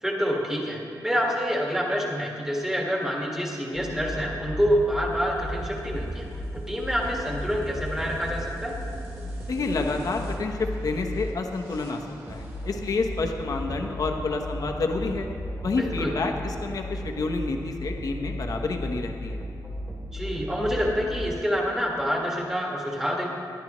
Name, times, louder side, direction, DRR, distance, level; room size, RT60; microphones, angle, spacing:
voice 1, 0.0-6.2 6.5-8.7 15.6-16.1 20.1-23.3, equal, 5° right, -2 dB, 1.7 m, -27 dB
sound 1, 3.7-21.3, equal, 35° right, 2.7 m, -35 dB
voice 2, 9.5-12.0 12.3-15.3 15.6-19.4, left 3 dB, 50° left, 3 dB, 1.0 m, -29 dB
18.0 x 11.0 x 3.1 m, 2.4 s
wide cardioid pair, 170°, 8 cm